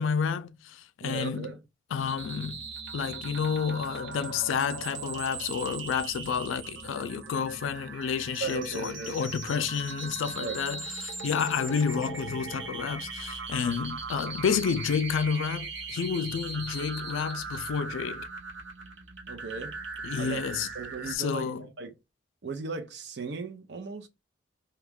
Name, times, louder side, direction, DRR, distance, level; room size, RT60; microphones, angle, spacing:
voice 1, 0.0-1.5 1.9-2.6 2.9-18.2 20.0-20.7 21.0-21.7, left 6 dB, 90° left, 0.3 m, -30 dB
voice 2, 1.0-1.6 8.4-9.5 10.4-10.6 19.3-19.7 20.2-20.4 20.7-21.9 22.4-24.1, right 4 dB, 60° right, 0.6 m, -37 dB
sound 1, 2.0-21.2, right 4 dB, 80° right, 0.9 m, -39 dB
2.8 x 2.3 x 3.5 m
head